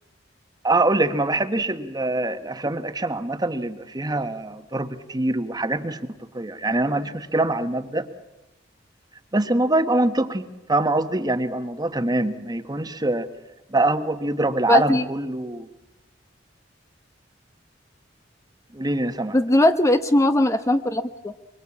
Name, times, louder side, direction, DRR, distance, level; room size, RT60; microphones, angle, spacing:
voice 1, 0.6-6.0 6.3-8.1 9.3-13.3 13.7-15.7 18.7-19.4, right 2 dB, 20° right, 10 dB, 1.3 m, -24 dB
voice 2, 14.7-15.1 19.3-21.3, left 1 dB, 15° left, 8 dB, 0.8 m, -19 dB
24.0 x 24.0 x 8.5 m, 0.96 s
head